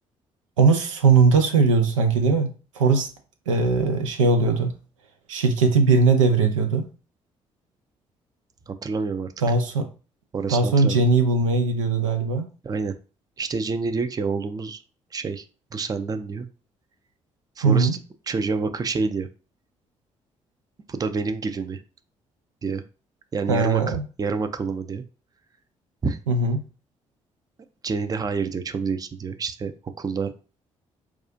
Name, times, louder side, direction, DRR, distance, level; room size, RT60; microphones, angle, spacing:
voice 1, 0.6-3.1 3.5-4.7 5.3-6.9 9.4-9.9 10.5-12.5 17.6-18.0 23.5-24.0 26.3-26.6, right 4 dB, 80° right, 6 dB, 0.5 m, -20 dB
voice 2, 8.7-9.3 10.3-11.0 12.6-12.9 13.4-14.8 15.1-15.4 15.7-16.5 17.6-17.9 18.3-19.3 20.9-21.8 22.6-22.8 23.3-25.0 26.0-26.2 27.8-29.7 30.0-30.3, right 4 dB, 25° right, 10 dB, 0.5 m, -27 dB
4.8 x 2.3 x 2.6 m, 0.35 s
figure-of-eight pair, 45°, 16 cm